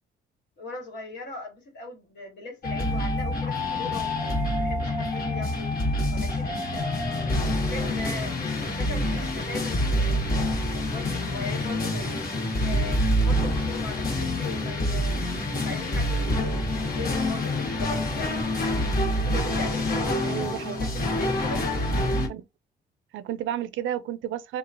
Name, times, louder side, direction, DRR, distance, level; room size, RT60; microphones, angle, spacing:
voice 1, 0.6-5.7 6.1-6.5 7.6-12.2 12.6-15.2 15.5-16.7 16.9-18.5 19.1-21.7, left 2 dB, 65° left, 1.5 m, -39 dB
sound 1, 2.6-22.3, left 1 dB, 50° left, 1.3 m, -26 dB
voice 2, 20.3-20.8 22.3-22.4 23.1-24.6, right 11 dB, 75° right, 0.4 m, -31 dB
3.0 x 2.4 x 2.5 m
cardioid pair, 90°, 20 cm